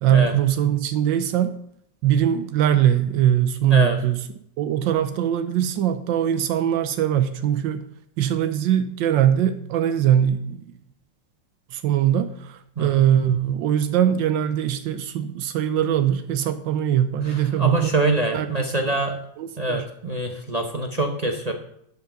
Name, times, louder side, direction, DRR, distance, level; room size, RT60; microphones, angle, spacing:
voice 1, 0.0-1.5 2.0-4.2 4.6-7.8 8.2-10.6 11.7-17.9 18.3-18.5 18.8-18.9 19.4-19.8, right 10 dB, 85° right, 10 dB, 1.4 m, -21 dB
voice 2, 17.2-19.1 19.6-21.5, right 2 dB, 35° right, 4 dB, 0.7 m, -24 dB
11.5 x 5.9 x 5.8 m, 0.71 s
omnidirectional pair, 2.0 m